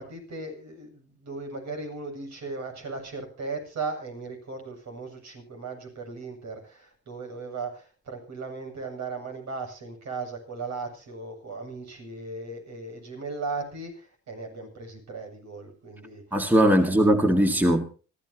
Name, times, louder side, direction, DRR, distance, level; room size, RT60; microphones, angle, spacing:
voice 1, 0.0-16.2 16.7-17.4, right 3 dB, 65° right, 7.7 m, -37 dB
voice 2, 16.3-17.9, right 1 dB, 5° right, 1.9 m, -20 dB
25.5 x 14.5 x 2.9 m
cardioid pair, 90°, 30 cm